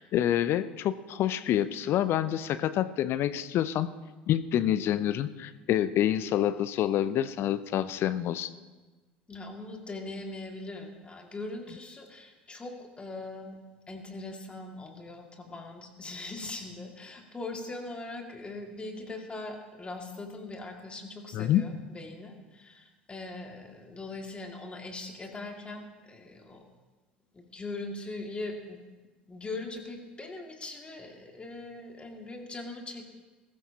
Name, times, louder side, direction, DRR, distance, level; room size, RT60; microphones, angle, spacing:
voice 1, 0.0-3.9 4.3-8.5 21.3-21.6, left 11 dB, 45° left, 14 dB, 0.6 m, -27 dB
voice 2, 9.3-13.6 13.9-26.6 27.3-28.8 29.3-33.1, left 2 dB, 20° left, 2 dB, 2.2 m, -41 dB
21.5 x 14.0 x 2.9 m, 1.2 s
figure-of-eight pair, 65°, 6 cm